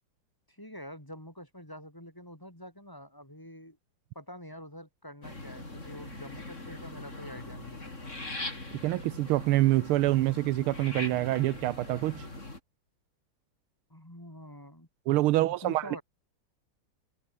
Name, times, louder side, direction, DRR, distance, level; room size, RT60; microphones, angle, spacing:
voice 1, 0.5-3.8 4.1-8.1 13.9-14.9 15.3-16.0, equal, 10° left, 5.0 m, -46 dB
sound 1, 5.2-12.6, left 2 dB, 30° left, 5.1 m, -41 dB
voice 2, 8.8-12.2 15.1-15.8, right 17 dB, 80° right, 1.5 m, -26 dB
omnidirectional pair, 2.4 m